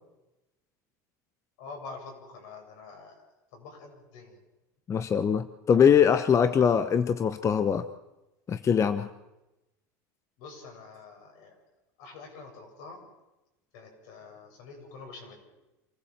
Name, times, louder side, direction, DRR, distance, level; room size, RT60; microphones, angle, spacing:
voice 1, 1.6-3.2 3.5-4.4 10.4-11.5 12.0-13.0 13.7-15.5, left 4 dB, 70° left, 2 dB, 7.6 m, -46 dB
voice 2, 4.9-7.9 8.5-9.1, left 7 dB, 30° left, 12 dB, 0.9 m, -22 dB
27.0 x 15.0 x 7.4 m, 1.0 s
supercardioid pair, 95°, 10 cm